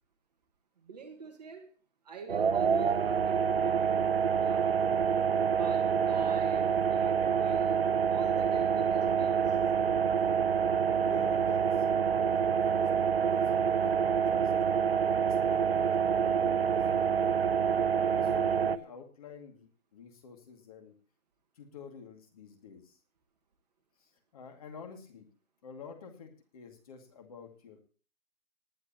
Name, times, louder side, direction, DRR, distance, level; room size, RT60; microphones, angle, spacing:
voice 1, 0.8-1.7 2.0-4.9 5.4-7.8 8.1-9.6, right 5 dB, 30° right, 1.6 m, -46 dB
sound 1, 2.3-18.8, right 7 dB, 45° right, 0.7 m, -27 dB
voice 2, 11.0-14.5 15.2-17.3 18.0-21.0 21.6-23.0 24.0-25.3 25.6-27.8, left 5 dB, 25° left, 2.3 m, -49 dB
20.0 x 10.0 x 2.9 m
hypercardioid pair, 165°, 42 cm